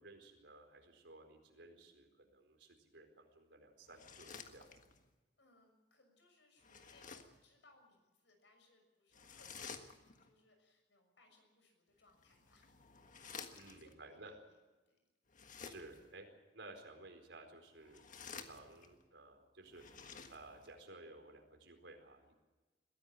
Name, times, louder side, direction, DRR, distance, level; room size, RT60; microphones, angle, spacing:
voice 1, 0.0-4.7 13.5-14.3 15.6-16.3 16.5-19.8 20.3-22.3, right 2 dB, 85° right, 4 dB, 4.4 m, -56 dB
sound 1, 3.8-5.1 6.6-7.4 9.1-10.3 12.1-13.9 15.3-16.1 17.7-19.0 19.7-20.7, left 5 dB, 45° left, 1.6 m, -53 dB
voice 2, 5.4-12.8 13.2-14.6 14.9-15.0, left 2 dB, 80° left, 5 dB, 6.5 m, -70 dB
22.0 x 15.5 x 8.7 m, 1.2 s
head